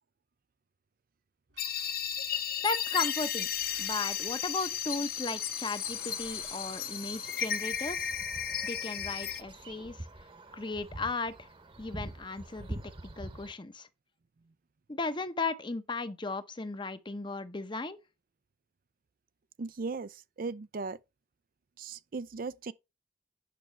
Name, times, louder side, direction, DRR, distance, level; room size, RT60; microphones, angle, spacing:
sound 1, 1.5-7.7, right 4 dB, 80° right, 3.6 m, -54 dB
sound 2, 1.6-9.4, left 8 dB, 55° left, 0.9 m, -34 dB
voice 1, 2.6-3.5 3.8-8.1 8.6-10.1 10.5-11.5 11.8-12.8 13.2-13.9 14.9-18.0, left 3 dB, 25° left, 0.8 m, -36 dB
sound 3, 5.9-13.5, right 1 dB, 30° right, 1.1 m, -46 dB
voice 2, 19.6-21.0 21.8-22.7, right 4 dB, 50° right, 0.5 m, -37 dB
9.3 x 6.1 x 4.5 m
head